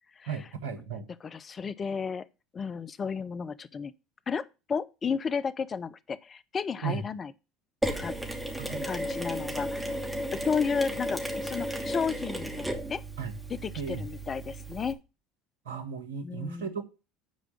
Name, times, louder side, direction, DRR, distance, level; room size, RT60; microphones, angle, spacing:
voice 1, 0.3-1.1 6.8-7.0 8.6-8.9 13.2-13.3 13.8-14.0 15.6-16.9, right 6 dB, 75° right, 1.5 m, -35 dB
voice 2, 1.2-2.3 2.5-3.9 4.3-7.3 8.0-8.2 8.9-9.9 10.3-13.0 13.5-15.0 16.2-16.7, left 6 dB, 35° left, 0.6 m, -33 dB
Mechanisms, 7.8-14.9, equal, 10° right, 2.7 m, -34 dB
10.5 x 4.9 x 7.2 m
hypercardioid pair, 70°, 0 cm